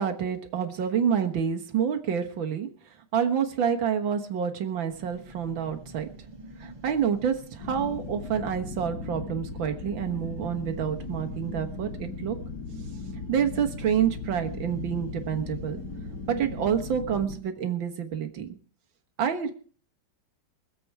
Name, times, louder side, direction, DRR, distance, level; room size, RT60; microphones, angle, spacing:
voice 1, 0.0-2.7 3.1-6.1 6.6-12.4 13.3-15.8 16.3-18.6 19.2-19.5, right 8 dB, 85° right, 6 dB, 2.2 m, -28 dB
sound 1, 4.9-16.8, equal, 20° right, 2.4 m, -49 dB
sound 2, 7.6-17.4, left 3 dB, 55° left, 2.4 m, -37 dB
23.5 x 7.9 x 4.7 m, 0.43 s
omnidirectional pair, 2.0 m